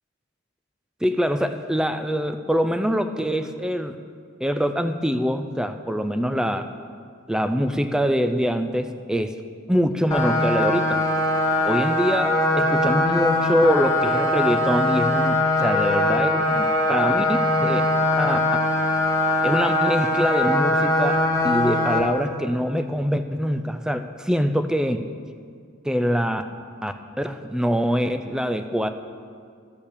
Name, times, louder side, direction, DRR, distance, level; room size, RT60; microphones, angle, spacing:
voice 1, 1.0-4.0 4.4-6.7 7.3-9.4 9.7-11.0 11.6-12.3 12.6-17.8 18.2-18.4 19.4-25.0 25.8-26.4 26.8-28.9, equal, 5° right, 8 dB, 0.4 m, -24 dB
sound 1, 10.1-22.0, left 1 dB, 15° left, 1.4 m, -21 dB
13.5 x 5.6 x 6.6 m, 2.2 s
head